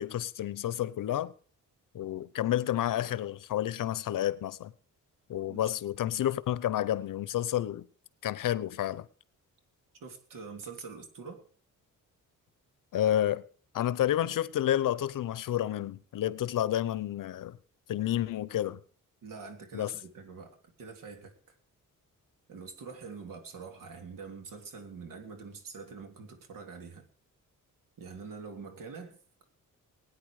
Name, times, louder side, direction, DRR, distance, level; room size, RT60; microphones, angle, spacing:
voice 1, 0.0-1.3 1.9-4.7 5.3-7.9 8.2-9.1 12.9-13.4 13.7-17.6 17.9-18.8 19.7-19.9, left 12 dB, 70° left, 0.9 m, -30 dB
voice 2, 10.0-11.4 19.2-21.3 22.5-27.0 28.0-29.2, right 5 dB, 75° right, 3.2 m, -45 dB
20.0 x 9.6 x 4.9 m
wide cardioid pair, 165°, 33 cm